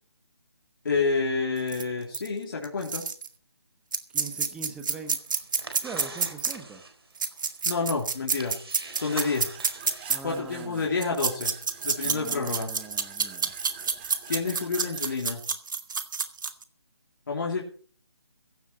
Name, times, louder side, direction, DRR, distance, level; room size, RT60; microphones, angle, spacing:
voice 1, 0.8-3.0 7.6-8.5 8.9-9.5 10.2-11.5 11.8-12.7 14.3-15.4 17.3-17.6, left 4 dB, 50° left, -1 dB, 3.1 m, -28 dB
sound 1, 1.7-1.8 2.1-2.3 2.6-3.3 3.9-6.5 7.2-10.2 11.0-16.6, right 5 dB, 45° right, 1.7 m, -28 dB
voice 2, 4.1-5.2 5.8-6.8 10.1-10.9 12.0-13.5, right 4 dB, 5° right, 7 dB, 1.3 m, -41 dB
sound 2, 5.0-10.6, right 3 dB, 65° right, 4.2 m, -44 dB
sound 3, 8.9-15.2, right 8 dB, 25° right, 1.9 m, -48 dB
16.0 x 12.5 x 4.3 m, 0.43 s
figure-of-eight pair, 155°, 14 cm